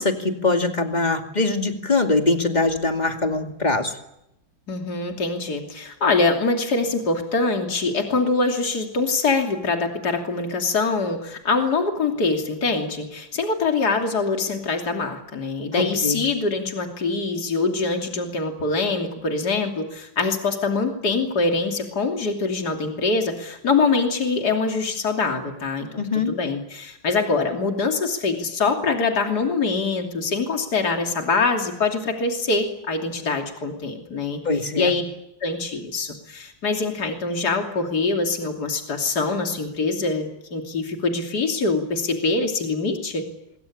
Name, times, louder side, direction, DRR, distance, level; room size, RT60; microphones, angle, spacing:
voice 1, 0.0-3.9 15.8-16.2 26.0-26.3 34.4-34.9, left 3 dB, 20° left, 4 dB, 2.4 m, -22 dB
voice 2, 4.7-34.4 34.8-35.0 35.4-43.3, left 3 dB, 55° left, 3 dB, 3.4 m, -24 dB
24.5 x 23.5 x 8.6 m, 0.84 s
omnidirectional pair, 2.1 m